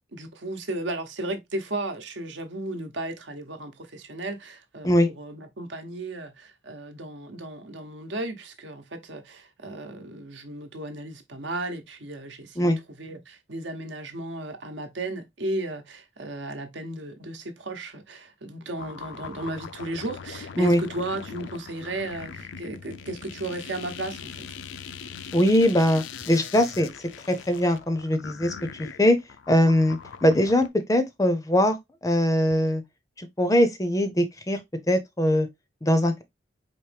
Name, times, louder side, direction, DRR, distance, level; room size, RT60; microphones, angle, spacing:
voice 1, 0.1-12.7 13.0-24.6, right 1 dB, 70° right, 0.9 m, -35 dB
sound 1, 18.8-30.7, left 6 dB, 75° left, 0.4 m, -41 dB
voice 2, 25.3-26.9 27.3-29.2 29.5-31.8 32.0-32.8 33.2-34.6 34.9-35.5 35.8-36.2, left 1 dB, 15° left, 0.5 m, -21 dB
4.6 x 3.0 x 3.3 m
head